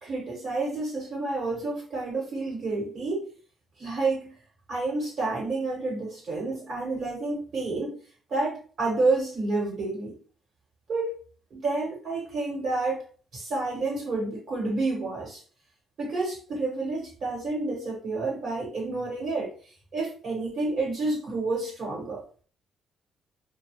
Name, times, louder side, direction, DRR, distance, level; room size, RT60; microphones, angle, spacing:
voice 1, 0.0-3.3 3.8-4.4 4.7-8.0 8.3-10.1 10.9-11.2 11.5-13.0 13.3-15.4 16.0-22.2, right 3 dB, 60° right, -4 dB, 1.3 m, -29 dB
2.3 x 2.3 x 3.1 m, 0.42 s
cardioid pair, 90°, 0 cm